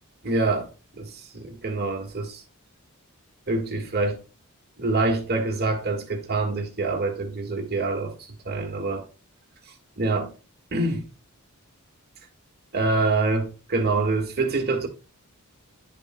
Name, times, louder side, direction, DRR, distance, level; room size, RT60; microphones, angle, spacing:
voice 1, 0.2-0.7 0.9-2.4 3.5-4.2 4.8-9.1 10.0-10.3 10.7-11.0 12.7-14.9, right 3 dB, 45° right, 1.7 m, -26 dB
10.5 x 6.8 x 2.2 m
head